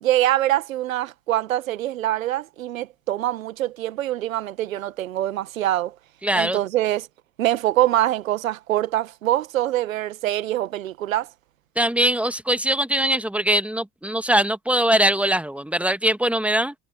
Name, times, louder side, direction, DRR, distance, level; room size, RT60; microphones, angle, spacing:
voice 1, 0.0-5.9 6.4-7.1 7.4-11.3, right 14 dB, 75° right, 1.6 m, -24 dB
voice 2, 6.2-6.6 11.8-16.7, right 1 dB, 5° right, 1.9 m, -21 dB
figure-of-eight pair, 55°, 40 cm